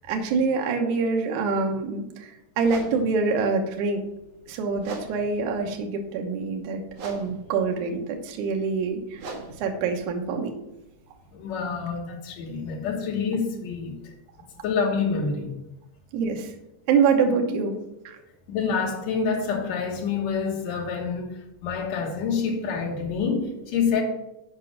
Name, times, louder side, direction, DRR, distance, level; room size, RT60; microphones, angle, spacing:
voice 1, 0.1-4.0 4.5-9.2 9.6-10.5 16.1-16.5 16.9-17.8 18.1-18.2, right 5 dB, 80° right, 1.7 m, -25 dB
sound 1, 2.6-11.3, right 2 dB, 65° right, 1.6 m, -44 dB
voice 2, 11.3-14.1 14.6-15.5 17.5-17.6 18.5-24.0, left 5 dB, 75° left, 1.6 m, -27 dB
8.2 x 5.2 x 6.5 m
omnidirectional pair, 5.1 m